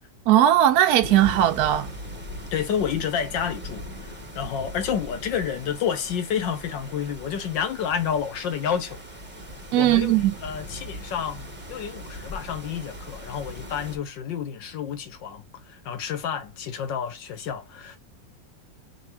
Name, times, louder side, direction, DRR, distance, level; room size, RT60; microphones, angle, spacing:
voice 1, 0.3-1.9 9.7-10.3, right 12 dB, 70° right, 1.0 m, -18 dB
sound 1, 1.0-14.0, equal, 5° right, 1.2 m, -39 dB
voice 2, 2.5-9.0 9.7-18.0, left 8 dB, 80° left, 1.7 m, -30 dB
5.3 x 3.4 x 2.6 m
omnidirectional pair, 1.9 m